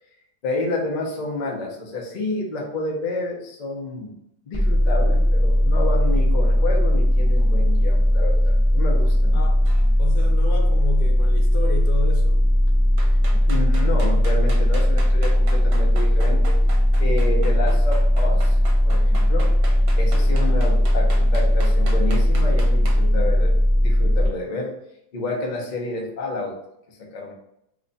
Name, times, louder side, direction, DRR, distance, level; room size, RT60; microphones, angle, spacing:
voice 1, 0.4-4.1 4.5-9.4 13.3-16.6 17.0-18.6 18.8-19.5 20.0-23.5 23.8-24.7 25.1-26.6 26.9-27.3, left 2 dB, 45° left, -1 dB, 0.6 m, -29 dB
sound 1, 4.5-24.3, equal, 10° right, 0.5 m, -18 dB
voice 2, 9.3-9.6 10.0-12.5 20.1-20.6, left 3 dB, 80° left, 3 dB, 1.1 m, -32 dB
sound 2, 9.7-9.9 13.0-23.0, right 3 dB, 70° right, 1.2 m, -38 dB
3.0 x 2.2 x 3.9 m, 0.78 s
omnidirectional pair, 1.7 m